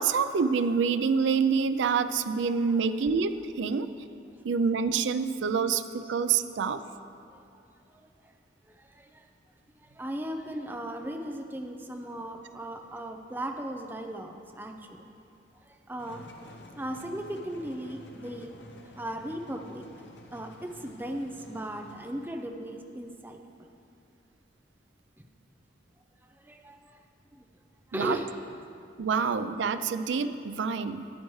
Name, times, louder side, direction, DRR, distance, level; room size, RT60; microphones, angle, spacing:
voice 1, 0.0-3.9 4.4-6.8 27.9-28.2 29.0-31.1, right 5 dB, 80° right, 11 dB, 0.4 m, -27 dB
voice 2, 7.9-8.3 8.7-9.3 9.8-15.1 15.6-16.2 16.7-18.5 18.8-19.8 20.3-23.7 26.2-27.0 27.3-27.4 27.9-28.3, right 1 dB, 10° right, 3 dB, 0.6 m, -37 dB
sound 1, 16.0-22.5, left 1 dB, 75° left, 0.8 m, -50 dB
13.5 x 9.1 x 3.2 m, 2.7 s
head